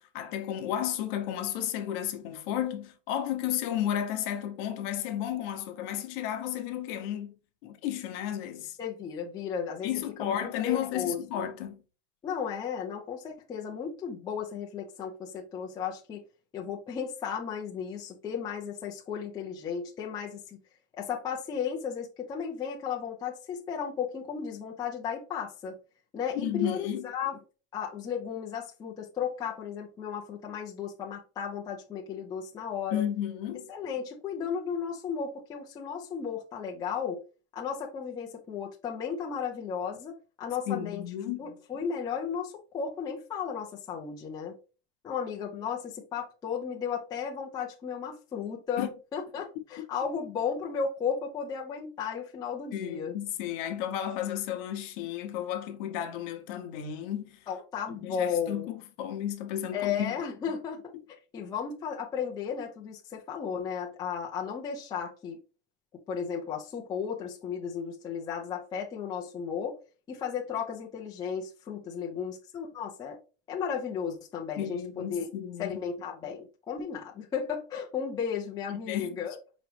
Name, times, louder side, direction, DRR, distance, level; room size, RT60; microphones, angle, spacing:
voice 1, 0.0-7.3 7.6-8.8 9.8-11.8 26.3-27.1 32.9-33.7 40.7-41.4 48.8-48.9 49.8-49.9 52.7-57.4 57.9-60.2 60.9-61.0 74.6-75.8 78.7-79.2, left 11 dB, 55° left, 0.8 m, -33 dB
voice 2, 8.8-9.9 10.2-11.5 12.2-16.2 16.5-20.6 20.9-25.8 26.1-27.4 27.7-33.1 33.7-37.2 37.5-41.0 41.4-44.6 45.0-53.1 57.5-58.7 59.7-60.9 61.3-65.4 66.1-69.8 70.1-73.2 73.5-75.3 75.6-79.4, left 7 dB, 15° left, 0.4 m, -34 dB
4.8 x 3.0 x 3.1 m
supercardioid pair, 155°, 32 cm